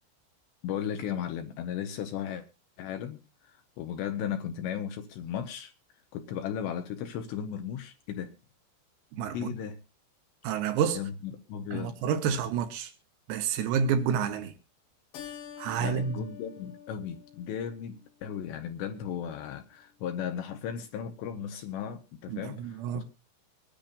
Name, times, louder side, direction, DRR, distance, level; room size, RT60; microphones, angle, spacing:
voice 1, 0.6-2.5 2.8-3.2 3.4-5.7 6.1-8.3 9.3-9.8 10.9-12.0 15.8-23.0, left 9 dB, 75° left, 2.6 m, -36 dB
voice 2, 9.1-9.5 10.4-11.0 11.7-12.9 13.3-14.5 15.6-16.2 22.3-23.0, right 7 dB, 85° right, 3.8 m, -29 dB
Keyboard (musical), 15.1-18.0, left 9 dB, 60° left, 2.4 m, -46 dB
24.5 x 10.5 x 2.5 m
omnidirectional pair, 6.0 m